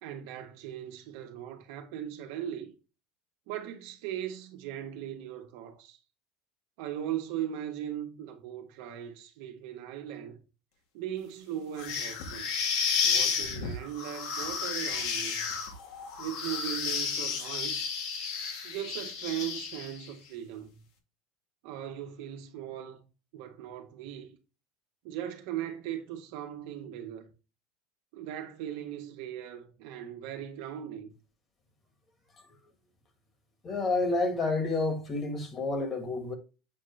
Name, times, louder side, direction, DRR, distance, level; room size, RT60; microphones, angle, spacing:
voice 1, 0.0-2.7 3.5-6.0 6.8-10.4 10.9-12.5 13.0-15.4 16.2-17.9 18.6-20.8 21.6-23.0 23.3-24.4 25.0-27.3 28.1-31.1, right 11 dB, 75° right, 1.3 m, -38 dB
sound 1, 11.8-20.1, left 6 dB, 70° left, 1.8 m, -32 dB
voice 2, 33.6-36.3, left 3 dB, 30° left, 1.8 m, -29 dB
7.5 x 3.8 x 3.3 m
supercardioid pair, 125°, 0 cm